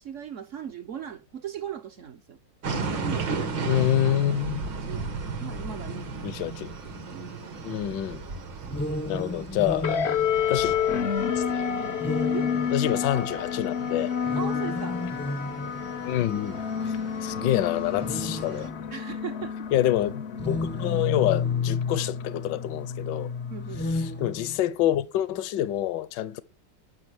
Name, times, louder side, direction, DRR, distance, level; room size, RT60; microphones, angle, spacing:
voice 1, 0.0-2.4 2.9-3.8 4.6-5.0 5.4-6.3 7.1-7.7 8.5-9.2 12.3-12.5 14.4-15.0 17.4-17.6 18.9-19.5 23.5-23.9, right 8 dB, 55° right, 0.9 m, -39 dB
sound 1, 2.6-18.7, right 4 dB, 75° right, 2.4 m, -36 dB
voice 2, 3.7-4.6 6.2-6.7 7.6-8.2 9.1-9.9 10.5-10.7 11.4-11.7 12.7-14.1 16.0-18.7 19.7-23.3 23.9-26.4, left 12 dB, 75° left, 1.3 m, -27 dB
sound 2, 8.6-11.1 12.0-13.2 14.2-16.0 16.9-17.0 17.9-19.0 20.3-22.1 23.6-24.9, left 1 dB, 15° left, 0.4 m, -34 dB
sound 3, 9.8-24.6, left 7 dB, 55° left, 0.7 m, -29 dB
10.5 x 6.1 x 8.0 m
omnidirectional pair, 2.0 m